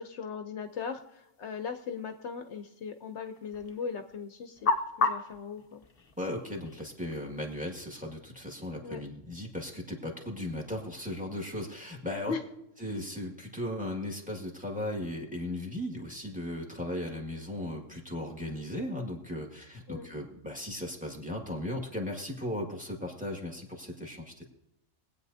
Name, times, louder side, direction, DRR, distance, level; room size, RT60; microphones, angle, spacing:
voice 1, 0.0-4.7 5.0-5.8 8.8-9.0 12.3-12.4 19.9-20.1, left 6 dB, 65° left, 7 dB, 1.0 m, -38 dB
sound 1, 0.6-7.5, left 3 dB, 35° left, 0.8 m, -36 dB
voice 2, 6.2-12.3 12.8-24.5, left 1 dB, 5° right, 1 dB, 1.9 m, -37 dB
23.0 x 8.6 x 2.7 m, 0.87 s
omnidirectional pair, 1.3 m